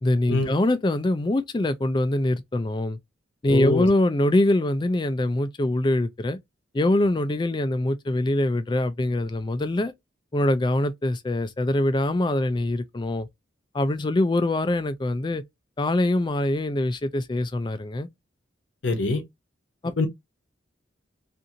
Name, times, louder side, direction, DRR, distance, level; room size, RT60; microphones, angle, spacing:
voice 1, 0.0-3.0 3.4-6.4 6.7-9.9 10.3-13.3 13.7-15.4 15.8-18.1 19.8-20.1, left 1 dB, 25° left, 0.3 m, -23 dB
voice 2, 3.5-3.9 18.8-19.2 20.0-20.1, left 3 dB, 70° left, 0.7 m, -24 dB
2.5 x 2.5 x 2.8 m
head